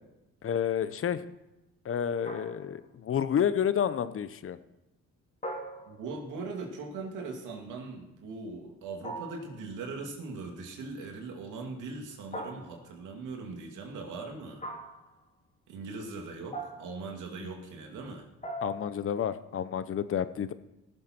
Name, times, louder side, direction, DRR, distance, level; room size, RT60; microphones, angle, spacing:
voice 1, 0.4-1.2 1.8-4.6 18.6-20.5, left 8 dB, 45° left, 13 dB, 0.8 m, -30 dB
sound 1, 2.2-2.9 5.4-6.3 9.0-9.6 12.3-13.0 14.6-15.1 16.5-17.1 18.4-19.1, right 1 dB, 25° left, 2.4 m, -40 dB
voice 2, 5.9-14.6 15.7-18.3, right 3 dB, 90° right, 2 dB, 2.4 m, -40 dB
19.0 x 7.3 x 4.5 m, 0.94 s
cardioid pair, 90°, 30 cm